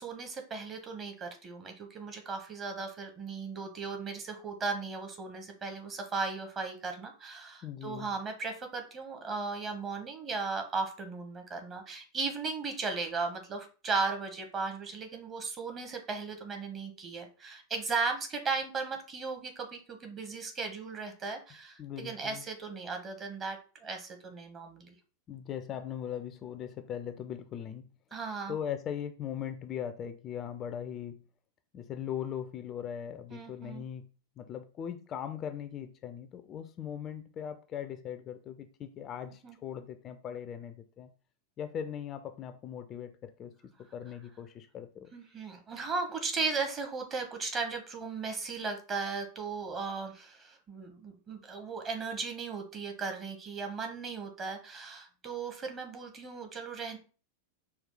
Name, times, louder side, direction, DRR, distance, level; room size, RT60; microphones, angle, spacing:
voice 1, 0.0-24.9 28.1-28.6 33.3-33.8 39.4-39.6 45.1-57.0, right 4 dB, 25° right, 0.9 m, -36 dB
voice 2, 7.6-8.1 21.8-22.4 25.3-27.9 28.5-31.2 31.7-34.1 34.4-41.1 41.6-43.5 43.8-45.1, left 9 dB, 30° left, 0.4 m, -39 dB
4.7 x 2.3 x 3.7 m
figure-of-eight pair, 90°, 0 cm